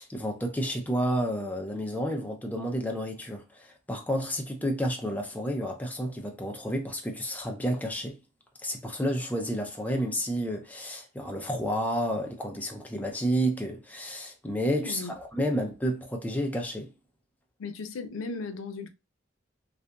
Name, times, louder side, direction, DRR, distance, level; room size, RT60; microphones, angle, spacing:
voice 1, 0.0-8.2 8.6-16.9, equal, 10° left, 0.5 m, -30 dB
voice 2, 14.8-15.1 17.6-18.9, left 4 dB, 80° left, 0.5 m, -36 dB
2.7 x 2.5 x 2.3 m
head